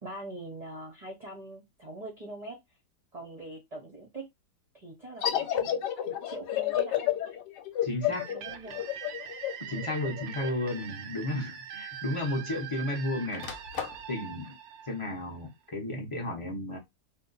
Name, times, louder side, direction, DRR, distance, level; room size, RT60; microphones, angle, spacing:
voice 1, 0.0-2.6 3.1-4.2 4.7-7.0 8.3-8.8, right 2 dB, 35° right, 0.6 m, -43 dB
sound 1, 5.2-10.5, left 11 dB, 90° left, 1.2 m, -30 dB
voice 2, 7.8-8.3 9.7-13.5 14.1-14.5 14.9-16.8, left 1 dB, 30° left, 0.5 m, -33 dB
sound 2, 8.1-15.7, right 9 dB, 80° right, 0.6 m, -43 dB
sound 3, 8.5-8.8 9.8-9.9 11.3-11.4 11.7-12.8 13.1-14.1, left 7 dB, 65° left, 1.0 m, -40 dB
2.6 x 2.4 x 3.9 m
omnidirectional pair, 1.8 m